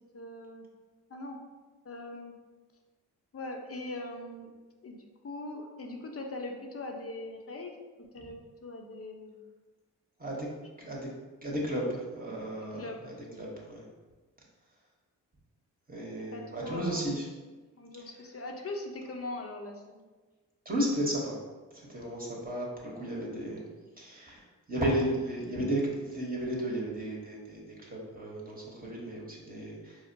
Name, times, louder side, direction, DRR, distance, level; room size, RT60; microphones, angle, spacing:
voice 1, 0.1-0.6 1.1-1.4 1.8-2.3 3.3-4.5 4.8-5.0 5.2-7.7 8.1-9.4 12.8-13.0 13.3-13.4 16.3-17.1 17.8-20.0, left 2 dB, 35° left, 2 dB, 0.7 m, -41 dB
voice 2, 10.8-11.1 11.4-13.9 15.9-17.2 20.6-21.4 21.7-23.6 24.0-24.4 24.7-30.1, right 1 dB, 20° right, -4 dB, 1.0 m, -34 dB
4.5 x 2.1 x 2.7 m, 1.3 s
hypercardioid pair, 40°, 40 cm